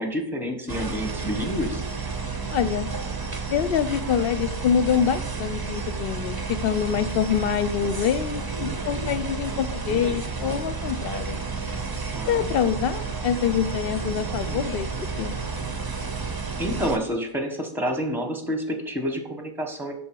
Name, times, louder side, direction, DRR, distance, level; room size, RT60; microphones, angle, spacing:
voice 1, 0.0-1.8 12.1-12.5 16.6-19.9, equal, ahead, 4 dB, 1.0 m, -28 dB
sound 1, 0.7-17.0, right 4 dB, 25° right, 0.6 m, -31 dB
voice 2, 2.5-2.9 3.5-11.4 12.3-14.9 15.2-15.4, left 8 dB, 60° left, 13 dB, 0.7 m, -25 dB
11.5 x 3.9 x 4.6 m, 0.74 s
omnidirectional pair, 1.3 m